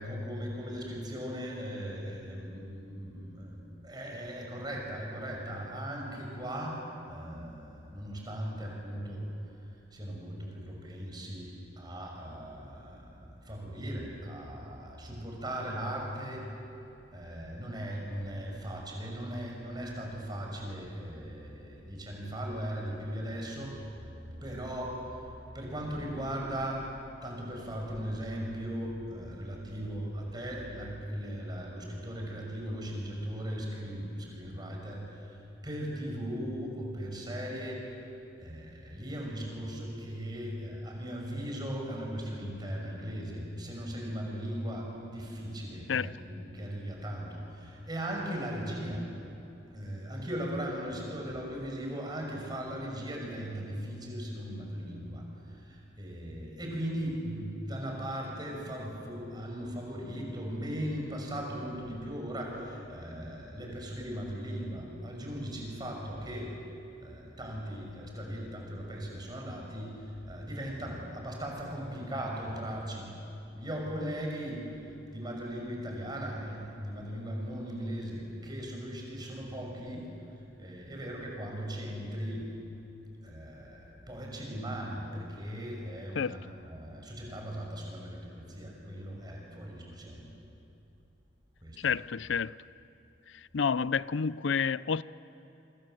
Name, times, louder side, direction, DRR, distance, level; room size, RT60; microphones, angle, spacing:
voice 1, 0.0-9.2 9.6-16.5 17.1-23.8 24.4-25.3 25.5-26.9 27.2-38.0 38.4-49.1 49.7-66.6 67.0-73.1 73.5-80.1 80.6-82.5 83.2-90.3 91.6-92.0, equal, 20° right, 6.2 m, -38 dB
voice 2, 91.8-92.6 93.3-95.0, left 6 dB, 80° left, 0.5 m, -30 dB
27.5 x 26.0 x 7.8 m
head